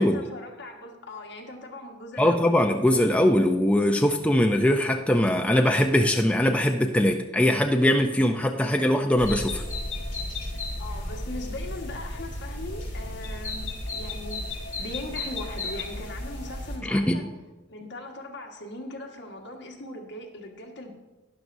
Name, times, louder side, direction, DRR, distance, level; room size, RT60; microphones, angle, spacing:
voice 1, 0.0-2.5 10.8-17.3 17.7-20.9, left 1 dB, 65° left, 1 dB, 1.5 m, -39 dB
voice 2, 2.2-9.6 16.8-17.2, left 1 dB, 5° left, 3 dB, 0.5 m, -21 dB
sound 1, 9.2-16.8, left 2 dB, 45° left, 2.7 m, -34 dB
12.0 x 10.5 x 2.6 m, 1.1 s
head